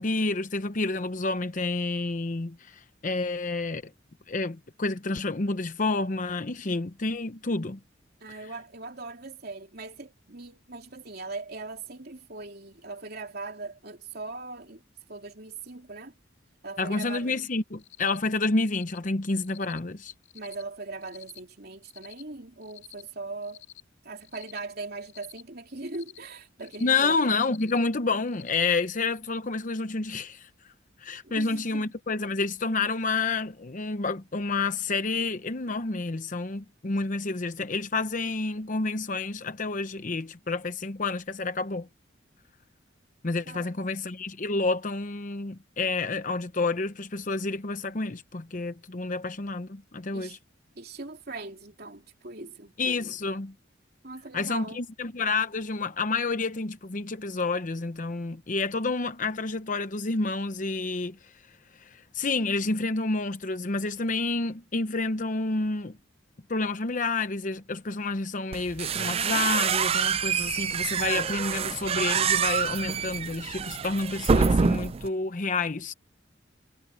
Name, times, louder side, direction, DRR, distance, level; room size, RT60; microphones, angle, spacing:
voice 1, 0.0-3.9 4.3-7.8 8.3-8.4 16.8-20.1 26.8-30.5 31.0-41.9 43.2-50.4 52.8-53.5 54.3-66.0 66.5-75.9, left 3 dB, 45° left, 0.8 m, -29 dB
voice 2, 8.2-16.1 16.6-17.4 20.3-23.6 24.0-27.2 31.2-31.9 43.4-43.8 50.1-50.4 50.7-52.8 54.0-54.9, right 3 dB, 55° right, 3.3 m, -40 dB
Cricket, 17.8-18.2 18.6-19.0 19.4-19.8 20.2-20.6 21.0-21.4 21.8-22.2 22.6-23.0 23.4-23.8 24.2-24.6 25.0-25.4 25.8-26.2 26.6-27.0 27.4-27.8 28.3-28.7, left 13 dB, 70° left, 2.5 m, -49 dB
sound 1, 68.5-75.1, right 6 dB, 30° right, 0.4 m, -26 dB
head